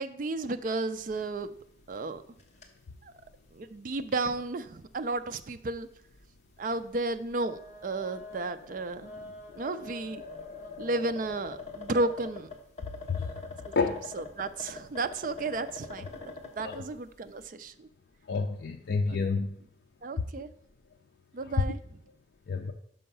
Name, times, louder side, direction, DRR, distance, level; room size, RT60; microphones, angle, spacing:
voice 1, 0.0-1.5 1.9-2.2 3.0-3.1 3.5-5.9 6.6-10.2 10.8-12.5 14.1-16.3 16.6-17.9 19.1-19.2 20.0-20.5 21.3-21.8, right 2 dB, 45° right, 10 dB, 0.4 m, -33 dB
sound 1, 0.9-1.4 1.7-1.8 2.3-2.7 3.3-3.4 4.2-4.4 4.8-4.9 6.0-6.2 7.3-16.9, left 3 dB, 35° left, 0.9 m, -44 dB
voice 2, 18.3-19.6 22.5-22.7, left 4 dB, 65° left, 2 dB, 0.5 m, -29 dB
5.6 x 5.5 x 5.4 m, 0.70 s
head